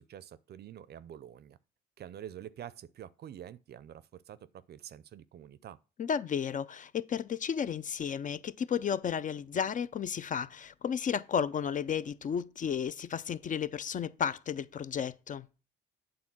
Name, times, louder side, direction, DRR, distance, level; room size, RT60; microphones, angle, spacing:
voice 1, 0.0-1.6 2.0-5.8, right 10 dB, 55° right, 0.5 m, -47 dB
voice 2, 6.0-15.5, left 7 dB, 40° left, 0.4 m, -33 dB
8.7 x 3.7 x 6.0 m
cardioid pair, 90°, 20 cm